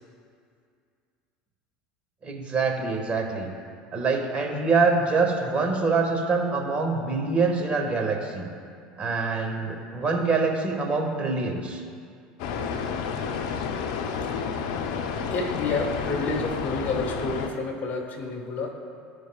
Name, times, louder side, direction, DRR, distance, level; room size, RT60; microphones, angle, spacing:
voice 1, 2.2-3.5 3.9-8.5 9.0-11.8, right 4 dB, 30° right, 1 dB, 1.5 m, -25 dB
sound 1, 12.4-17.5, left 6 dB, 70° left, 0.6 m, -30 dB
voice 2, 15.3-18.7, left 3 dB, 45° left, 3 dB, 1.4 m, -29 dB
14.0 x 5.1 x 2.3 m, 2.3 s
hypercardioid pair, 75°, 4 cm